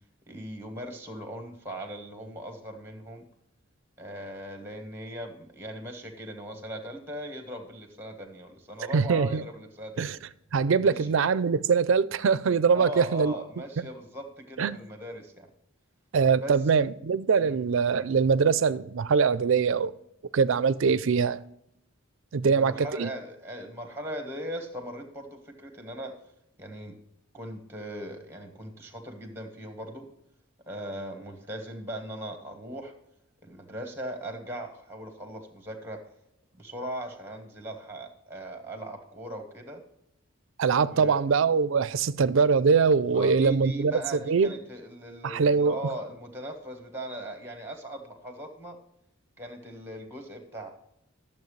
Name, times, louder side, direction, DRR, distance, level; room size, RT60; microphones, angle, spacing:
voice 1, 0.3-3.2 4.0-10.1 10.8-11.1 12.7-15.5 16.4-16.5 17.4-17.6 22.4-26.1 26.6-27.0 27.3-30.1 30.7-32.9 33.4-36.0 36.6-39.8 40.9-41.2 43.1-48.8 49.4-50.7, right 1 dB, 10° right, 1.4 m, -39 dB
voice 2, 8.9-9.4 10.0-10.2 10.5-13.3 14.6-14.8 16.1-19.9 20.3-21.4 22.3-23.1 40.6-43.9 44.3-44.5 45.2-45.8, right 5 dB, 65° right, 0.4 m, -23 dB
12.0 x 7.1 x 3.2 m
head